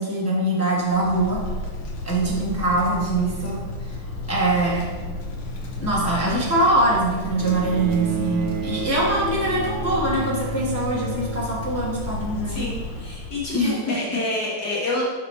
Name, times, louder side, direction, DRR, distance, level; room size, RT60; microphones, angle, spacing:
voice 1, 0.0-1.4 2.0-3.6 4.3-4.9 5.8-12.7 13.5-13.9, right 2 dB, 25° left, -5 dB, 0.3 m, -23 dB
Wind, 0.8-13.6, left 2 dB, 75° left, 1.9 m, -33 dB
Bowed string instrument, 7.4-12.9 14.0-14.1, right 4 dB, 75° right, 1.0 m, -32 dB
voice 2, 12.5-15.0, left 2 dB, 55° left, -6 dB, 1.7 m, -28 dB
5.9 x 4.9 x 4.2 m, 1.4 s
omnidirectional pair, 2.4 m